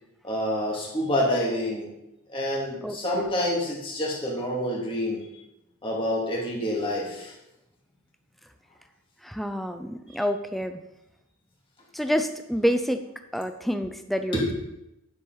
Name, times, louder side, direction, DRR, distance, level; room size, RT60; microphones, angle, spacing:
voice 1, 0.2-1.9 2.3-5.2 5.8-7.3 14.3-14.5, left 1 dB, 25° left, -4 dB, 2.2 m, -27 dB
voice 2, 2.8-3.3 9.2-10.8 11.9-13.0 13.3-14.5, equal, ahead, 8 dB, 0.5 m, -28 dB
9.8 x 6.9 x 4.0 m, 0.90 s
head